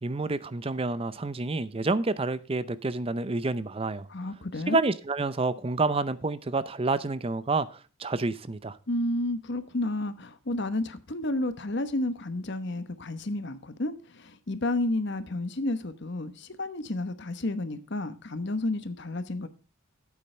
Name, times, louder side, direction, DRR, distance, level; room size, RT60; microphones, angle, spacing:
voice 1, 0.0-4.1 4.7-8.8, right 3 dB, 25° right, 0.5 m, -29 dB
voice 2, 4.1-4.8 8.9-19.5, left 2 dB, 55° left, 1.1 m, -31 dB
13.0 x 8.5 x 3.2 m
head